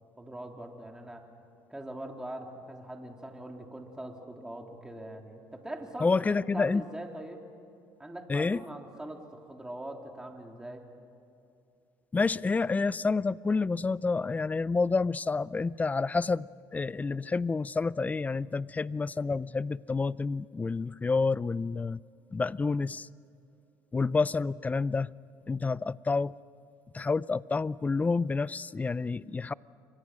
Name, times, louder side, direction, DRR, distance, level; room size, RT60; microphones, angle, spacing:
voice 1, 0.2-1.3 1.7-7.4 8.0-10.8, right 1 dB, 10° right, 2 dB, 3.6 m, -42 dB
voice 2, 6.0-6.8 8.3-8.6 12.1-16.5 16.7-22.0 22.3-23.1 23.9-25.1 25.5-26.3 26.9-29.5, left 4 dB, 20° left, 20 dB, 0.5 m, -29 dB
29.5 x 24.0 x 6.3 m, 2.7 s
supercardioid pair, 95°, 8 cm